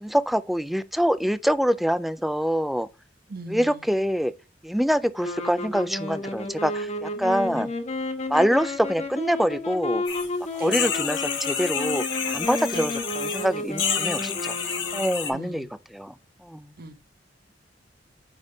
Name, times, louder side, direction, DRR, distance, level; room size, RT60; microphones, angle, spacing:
voice 1, 0.0-2.9 3.5-4.3 4.6-7.7 8.3-10.0 10.6-14.6 14.9-16.1 16.4-16.7, equal, ahead, 0.3 m, -25 dB
voice 2, 3.3-3.8 7.4-7.7 10.6-10.9 12.7-12.9 15.3-15.7 16.8-16.9, right 2 dB, 55° right, 0.8 m, -39 dB
sound 1, 5.2-15.6, left 2 dB, 40° left, 1.3 m, -32 dB
sound 2, 10.1-10.3 10.6-13.5 13.8-15.3, left 7 dB, 80° left, 1.6 m, -29 dB
9.1 x 3.6 x 3.9 m
head